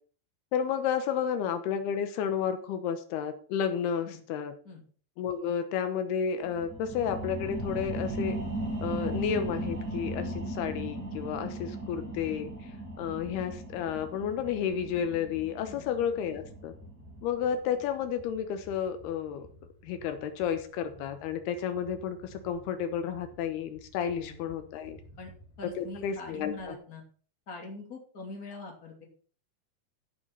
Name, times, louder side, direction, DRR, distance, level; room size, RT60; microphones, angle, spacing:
voice 1, 0.5-4.5 5.2-8.4 8.8-12.7 13.0-16.7 17.2-19.5 19.8-25.0 25.6-26.8, left 8 dB, 85° left, 9 dB, 3.0 m, -32 dB
sound 1, 6.4-17.6 18.0-18.1, right 1 dB, 30° right, 2.7 m, -37 dB
sound 2, 11.9-26.8, equal, 55° left, 5.6 m, -53 dB
voice 2, 24.1-24.5 25.2-25.3 25.6-27.0 27.5-29.1, left 3 dB, 25° left, 0 dB, 3.1 m, -43 dB
14.0 x 6.4 x 5.7 m, 0.43 s
omnidirectional pair, 4.6 m